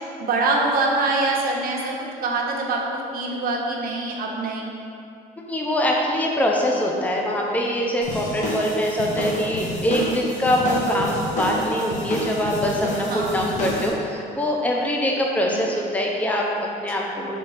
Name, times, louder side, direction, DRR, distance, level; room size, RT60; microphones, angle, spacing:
voice 1, 0.2-1.9 2.2-4.7 9.9-10.2 13.1-13.4 15.4-15.6 17.0-17.2, right 3 dB, 60° right, -1 dB, 1.0 m, -24 dB
voice 2, 5.5-17.4, equal, 10° left, -1 dB, 0.8 m, -23 dB
sound 1, 8.0-13.9, left 1 dB, 45° left, 1.4 m, -29 dB
5.3 x 3.8 x 5.6 m, 2.6 s
cardioid pair, 110°, 17 cm